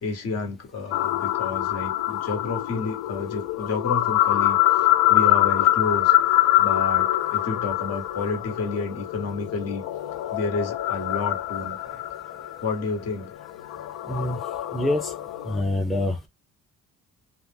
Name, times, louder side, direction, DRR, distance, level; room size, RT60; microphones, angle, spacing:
voice 1, 0.0-6.1 6.6-9.8 10.3-12.0 12.6-13.3, left 4 dB, 55° left, 1.1 m, -30 dB
sound 1, 0.9-15.6, left 15 dB, 75° left, 0.5 m, -24 dB
voice 2, 14.1-14.4 14.7-15.1 15.5-16.3, left 1 dB, ahead, 0.5 m, -25 dB
2.4 x 2.1 x 3.3 m
cardioid pair, 90°, 30 cm